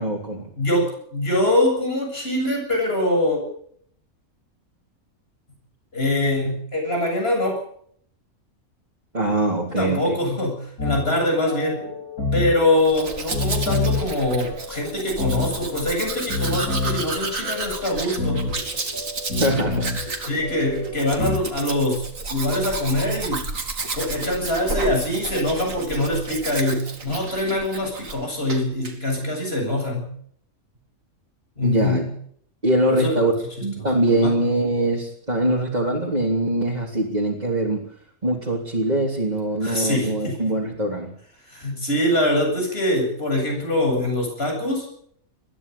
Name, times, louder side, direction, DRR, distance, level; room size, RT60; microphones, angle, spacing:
voice 1, 0.0-0.5 9.1-10.2 19.4-20.3 31.6-32.0 32.6-33.3 33.6-37.8 38.2-41.1, right 1 dB, 30° right, -3 dB, 3.5 m, -23 dB
voice 2, 0.6-3.4 5.9-7.6 9.8-11.8 12.3-18.5 20.3-22.0 22.3-23.5 23.9-30.1 31.6-32.1 32.9-33.2 34.2-34.4 39.6-40.4 41.5-44.9, left 1 dB, 40° left, 1 dB, 8.2 m, -23 dB
sound 1, 10.8-21.4, left 3 dB, 90° left, 6.5 m, -29 dB
Domestic sounds home sounds, 12.8-28.2 28.5-28.9, right 3 dB, 60° right, 2.9 m, -32 dB
21.5 x 15.0 x 8.5 m, 0.65 s
omnidirectional pair, 1.5 m